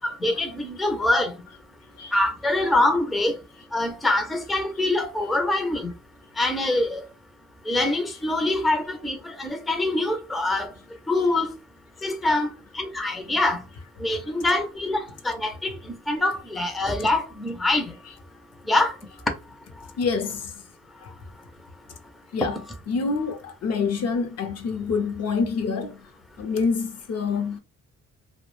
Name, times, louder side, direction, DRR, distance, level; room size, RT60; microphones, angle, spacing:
voice 1, 0.0-1.3 2.1-3.4 3.7-5.9 6.4-7.1 7.7-10.7 11.1-11.5 12.0-13.6 14.0-17.9 18.7-19.0, left 2 dB, ahead, 0.4 m, -24 dB
voice 2, 11.1-11.5 12.2-12.5 13.7-13.8 14.1-14.5 18.0-18.1 20.0-20.6 21.0-21.1 22.3-26.1 26.4-27.6, left 5 dB, 55° left, 0.5 m, -28 dB
2.2 x 2.0 x 3.0 m
cardioid pair, 90°, 30 cm